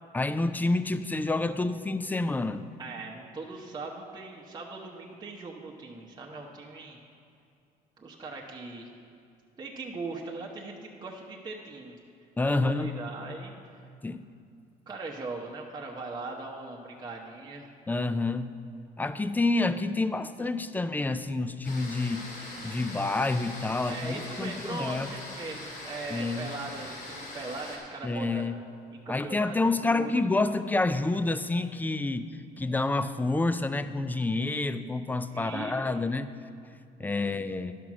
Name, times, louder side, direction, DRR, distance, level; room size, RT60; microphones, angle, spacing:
voice 1, 0.1-2.7 12.4-12.9 14.0-14.2 17.9-18.6 19.0-22.3 22.6-25.1 26.1-26.5 28.0-28.6 29.1-32.3 32.6-36.3 37.0-37.7, left 2 dB, 10° left, 12 dB, 0.4 m, -28 dB
voice 2, 2.8-7.0 8.0-8.9 9.6-12.0 12.5-13.5 14.9-17.7 23.9-28.4 29.0-29.5 29.8-30.2 35.3-35.9 37.0-37.5, right 3 dB, 25° right, -2 dB, 1.0 m, -40 dB
sound 1, 21.6-27.8, left 2 dB, 90° left, 2.3 m, -42 dB
11.0 x 5.9 x 6.0 m, 2.4 s
cardioid pair, 110°, 17 cm